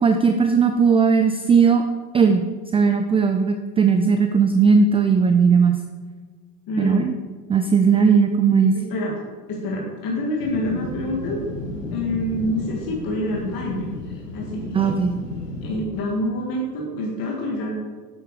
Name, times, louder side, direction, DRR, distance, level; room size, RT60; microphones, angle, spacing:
voice 1, 0.0-1.8 2.1-2.5 2.7-5.8 6.8-7.1 7.5-8.7 14.7-15.2, right 5 dB, 15° right, 7 dB, 0.4 m, -17 dB
voice 2, 6.7-7.1 7.9-8.0 8.9-9.2 9.5-11.4 11.9-15.0 15.6-17.7, left 1 dB, 45° left, -2 dB, 2.1 m, -27 dB
sound 1, 10.4-15.8, left 2 dB, 90° left, 2.1 m, -33 dB
8.7 x 7.9 x 4.8 m, 1.5 s
hypercardioid pair, 95°, 47 cm